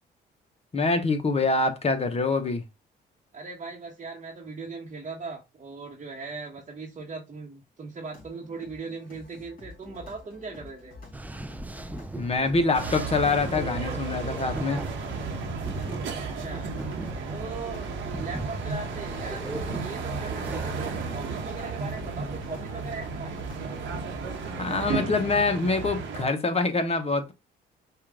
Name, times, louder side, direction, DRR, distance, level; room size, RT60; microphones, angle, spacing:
voice 1, 0.7-2.6 12.2-14.8 24.6-27.3, left 3 dB, 30° left, 1.1 m, -25 dB
voice 2, 3.3-10.9 16.2-16.7 17.3-23.4, right 4 dB, 35° right, 1.2 m, -39 dB
sound 1, 8.0-24.9, left 3 dB, 45° left, 3.1 m, -47 dB
sound 2, 11.1-21.0, right 2 dB, 10° right, 0.4 m, -39 dB
sound 3, 12.7-26.3, right 5 dB, 75° right, 1.3 m, -34 dB
5.5 x 2.5 x 3.6 m
cardioid pair, 90°, 20 cm